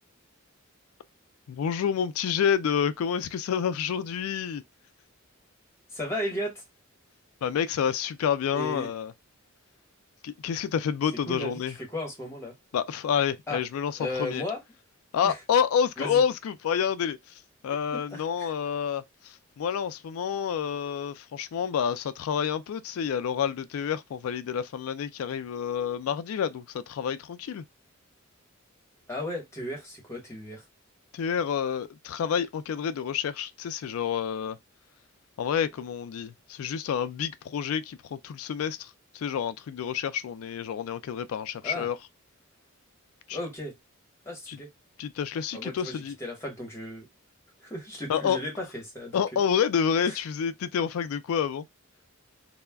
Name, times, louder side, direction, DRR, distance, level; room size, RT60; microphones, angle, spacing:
voice 1, 1.5-4.6 7.4-9.1 10.2-11.7 12.7-14.4 15.1-17.2 17.6-27.6 31.1-34.6 35.4-42.0 43.3-43.4 44.5-44.6 45.0-46.2 48.1-48.4 49.1-51.6, left 7 dB, 80° left, 0.3 m, -28 dB
voice 2, 5.9-6.6 8.5-8.9 11.3-12.6 13.5-13.6 14.0-14.6 15.2-15.4 16.0-16.2 17.9-18.5 29.1-30.6 41.6-41.9 43.3-43.7 44.2-44.7 45.5-47.1 47.6-49.2 50.0-50.2, left 1 dB, 15° left, 1.0 m, -35 dB
2.3 x 2.1 x 3.3 m
head